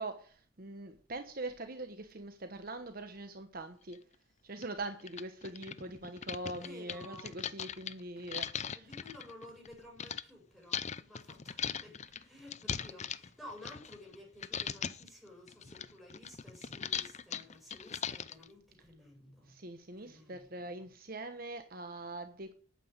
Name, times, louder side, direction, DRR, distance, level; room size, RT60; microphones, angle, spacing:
voice 1, 0.0-4.0 4.4-8.9 19.5-22.5, right 2 dB, 50° right, 1.2 m, -43 dB
sound 1, 3.9-4.0 4.6-4.7 5.0-10.2 10.7-14.2 14.4-15.1 15.5-18.5, left 7 dB, 35° left, 0.6 m, -39 dB
voice 2, 6.6-7.4 8.7-19.6 20.0-20.9, left 1 dB, ahead, 6.9 m, -54 dB
9.3 x 8.6 x 9.7 m
head